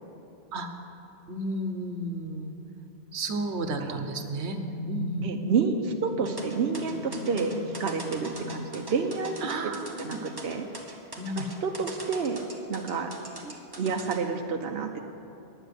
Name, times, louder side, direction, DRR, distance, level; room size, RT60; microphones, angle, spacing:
voice 1, 1.3-2.6 3.1-4.6 4.8-5.3 8.2-8.3 9.4-10.2 11.2-11.5 13.4-13.5, right 2 dB, 85° right, 6 dB, 1.2 m, -33 dB
sound 1, 3.6-9.9, left 2 dB, 40° left, 0.9 m, -39 dB
voice 2, 5.2-9.4 10.0-10.7 11.4-12.4 12.7-13.1 13.8-15.0, right 5 dB, 70° right, 3 dB, 1.0 m, -29 dB
sound 2, 6.3-14.2, right 2 dB, 20° right, 1.1 m, -42 dB
9.8 x 9.8 x 6.7 m, 2.9 s
omnidirectional pair, 1.1 m